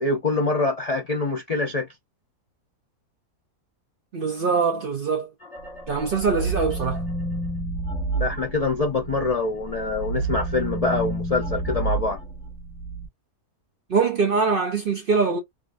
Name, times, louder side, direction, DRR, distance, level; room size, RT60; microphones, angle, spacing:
voice 1, 0.0-1.9 8.2-12.2, left 3 dB, 80° left, 0.3 m, -25 dB
voice 2, 4.1-5.3 5.9-7.0 13.9-15.4, right 5 dB, 60° right, 0.6 m, -23 dB
sound 1, 5.4-9.3 9.7-13.1, right 3 dB, 40° left, 1.6 m, -29 dB
3.7 x 2.4 x 2.5 m
omnidirectional pair, 1.6 m